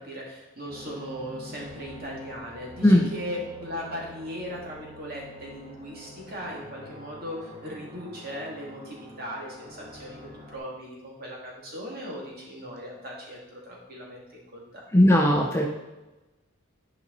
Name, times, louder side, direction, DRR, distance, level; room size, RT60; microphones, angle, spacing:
voice 1, 0.0-14.8, equal, 45° right, -3 dB, 2.5 m, -38 dB
sound 1, 0.7-10.6, left 1 dB, 25° right, 2.2 m, -46 dB
voice 2, 14.9-15.7, left 1 dB, 10° left, 1 dB, 0.6 m, -18 dB
11.5 x 5.4 x 4.0 m, 1.0 s
head